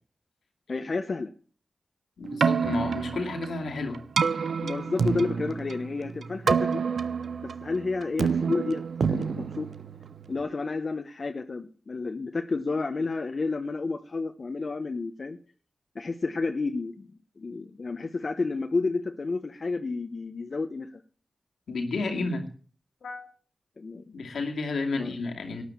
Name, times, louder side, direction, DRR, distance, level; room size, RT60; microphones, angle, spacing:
voice 1, 0.7-1.3 4.6-6.8 7.4-9.7 10.3-15.4 15.9-21.0 23.8-24.1 24.9-25.1, left 3 dB, 60° left, 5 dB, 1.0 m, -31 dB
voice 2, 2.2-4.0 21.7-22.5 23.0-23.3 24.1-25.6, left 3 dB, 90° left, 3 dB, 2.5 m, -31 dB
Keyboard (musical), 2.2-10.4, right 6 dB, 85° right, 0.7 m, -28 dB
12.5 x 9.4 x 7.3 m, 0.42 s
cardioid pair, 40°, 0 cm